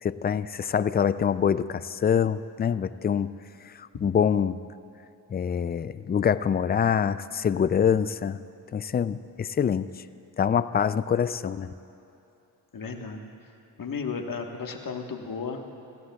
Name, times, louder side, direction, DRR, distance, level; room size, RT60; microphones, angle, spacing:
voice 1, 0.0-3.3 4.0-4.6 5.3-8.4 8.7-9.9 10.4-11.7, left 7 dB, 25° left, 15 dB, 0.3 m, -25 dB
voice 2, 12.7-13.3 13.8-15.6, left 5 dB, 50° left, 3 dB, 1.4 m, -34 dB
19.0 x 16.0 x 2.3 m, 2.8 s
cardioid pair, 55°, 42 cm